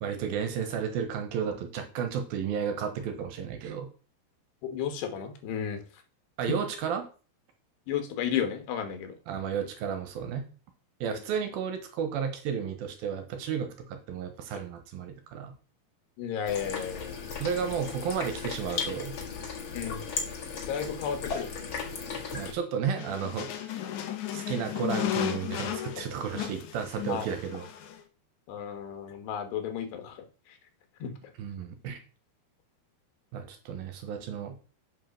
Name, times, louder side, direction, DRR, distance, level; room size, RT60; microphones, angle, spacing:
voice 1, 0.0-3.9 6.4-7.1 9.3-10.4 11.0-15.5 17.4-19.1 22.3-23.8 24.3-27.7 31.4-32.0 33.3-34.6, right 7 dB, 70° right, 7 dB, 2.9 m, -33 dB
voice 2, 4.6-5.8 6.5-6.6 7.9-9.2 11.1-11.2 16.2-17.2 19.8-20.0 20.7-21.5 27.1-27.3 28.5-30.2 31.0-31.1, left 8 dB, 85° left, 7 dB, 3.6 m, -33 dB
sound 1, 16.5-22.5, left 5 dB, 50° left, 1.6 m, -36 dB
sound 2, 22.9-28.0, left 11 dB, 70° left, 1.8 m, -34 dB
8.3 x 5.7 x 5.8 m, 0.36 s
omnidirectional pair, 4.7 m